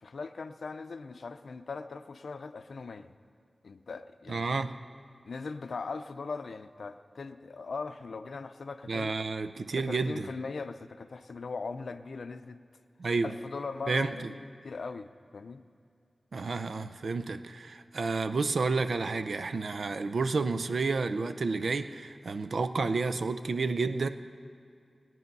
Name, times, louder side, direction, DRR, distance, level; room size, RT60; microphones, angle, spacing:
voice 1, 0.0-3.1 3.6-4.5 5.2-9.1 9.7-12.6 13.2-15.6, left 4 dB, 85° left, 10 dB, 0.5 m, -40 dB
voice 2, 4.3-4.7 8.9-10.3 13.0-13.3 13.9-14.3 16.3-24.1, right 4 dB, 80° right, 10 dB, 0.5 m, -30 dB
18.5 x 9.1 x 5.4 m, 2.5 s
wide cardioid pair, 100°, 0 cm